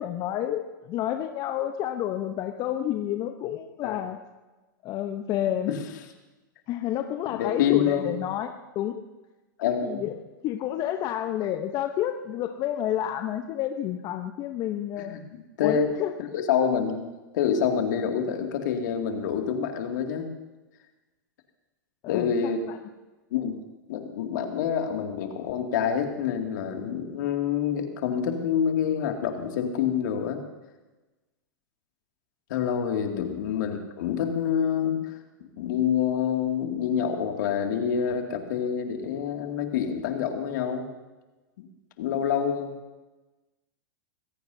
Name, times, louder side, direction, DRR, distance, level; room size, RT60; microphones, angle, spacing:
voice 1, 0.0-4.2 4.8-5.7 6.7-9.0 9.8-15.2 15.6-16.1 22.0-22.8 33.1-33.3, left 11 dB, 40° left, 6 dB, 0.9 m, -30 dB
voice 2, 7.3-8.1 9.6-10.0 15.0-15.9 16.2-17.1 17.3-20.3 22.1-22.7 23.3-23.6 23.9-30.4 32.5-40.9 41.6-41.7 42.0-42.7, left 8 dB, 65° left, 3 dB, 2.4 m, -27 dB
24.5 x 16.5 x 2.8 m, 1.1 s
hypercardioid pair, 105°, 11 cm